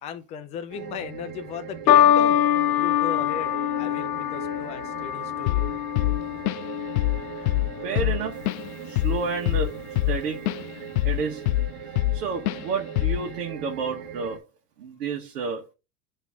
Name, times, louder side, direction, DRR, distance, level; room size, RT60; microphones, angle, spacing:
voice 1, 0.0-2.4 2.8-5.7, left 8 dB, 15° left, 0.3 m, -37 dB
sound 1, 0.7-14.4, right 9 dB, 55° right, 1.9 m, -40 dB
sound 2, 1.9-8.4 9.2-9.6, left 10 dB, 85° left, 0.9 m, -24 dB
Drum kit / Drum, 5.5-5.7 6.0-6.7 7.0-7.2 7.5-10.6 11.0-12.2 12.5-12.6 13.0-13.3, left 17 dB, 70° left, 0.5 m, -24 dB
voice 2, 7.8-8.4 8.8-10.5 11.0-11.5 12.1-14.4 14.8-15.7, right 5 dB, 70° right, 1.6 m, -30 dB
9.1 x 3.2 x 3.6 m
supercardioid pair, 135°, 46 cm